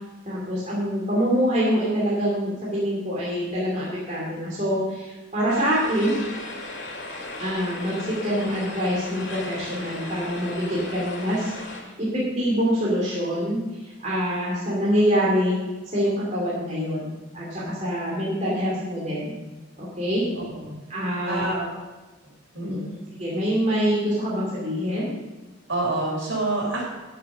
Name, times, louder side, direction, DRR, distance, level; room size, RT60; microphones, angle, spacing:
voice 1, 0.3-6.2 7.4-13.6 14.0-15.6 15.9-19.4 19.8-20.3 20.9-21.4 22.6-22.8 23.2-25.1, equal, 35° right, -6 dB, 2.8 m, -25 dB
sound 1, 5.5-11.8, left 2 dB, 60° left, 2.2 m, -36 dB
voice 2, 20.3-20.7 21.2-21.7 22.5-22.9 25.7-26.8, right 2 dB, 70° right, -3 dB, 4.4 m, -27 dB
13.0 x 6.7 x 6.2 m, 1.2 s
head